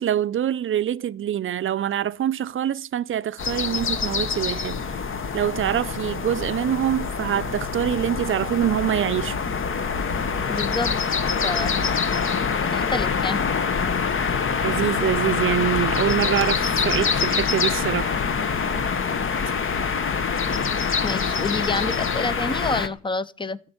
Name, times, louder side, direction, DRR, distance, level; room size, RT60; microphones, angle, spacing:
voice 1, 0.0-4.8 5.3-9.4 14.6-18.2, right 10 dB, 45° right, 0.5 m, -25 dB
sound 1, 3.4-22.9, left 5 dB, 45° left, 1.0 m, -25 dB
voice 2, 10.5-10.9 11.4-11.8 12.6-13.4 21.0-23.6, left 3 dB, 15° left, 0.6 m, -28 dB
13.0 x 6.5 x 8.9 m
cardioid pair, 90°, 30 cm